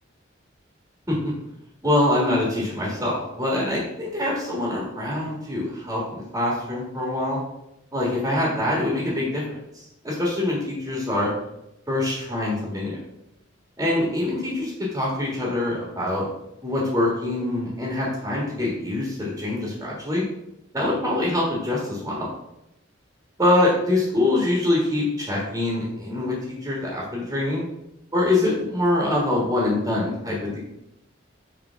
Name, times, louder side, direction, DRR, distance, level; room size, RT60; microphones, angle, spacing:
voice 1, 1.8-7.4 7.9-9.4 9.7-11.3 11.9-13.0 13.8-16.2 16.6-20.2 20.7-22.3 23.4-26.4 26.6-27.6 28.1-30.6, left 1 dB, 15° right, -4 dB, 1.6 m, -24 dB
5.7 x 3.6 x 5.7 m, 0.84 s
head